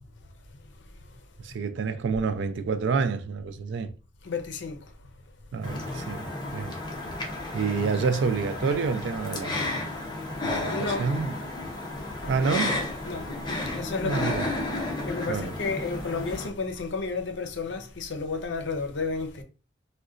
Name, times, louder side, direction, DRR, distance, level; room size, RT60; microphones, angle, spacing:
voice 1, 1.4-3.9 5.5-6.3 6.5-6.7 7.5-9.7 10.4-11.3 12.3-12.8 14.0-14.5 15.3-15.5, right 5 dB, 70° right, 0.3 m, -28 dB
voice 2, 4.2-4.8 9.7-9.8 10.7-11.1 12.1-12.3 13.0-14.5 15.0-19.4, left 4 dB, 70° left, 0.5 m, -32 dB
sound 1, 5.6-16.5, left 2 dB, 20° left, 0.5 m, -32 dB
3.7 x 2.2 x 2.4 m
head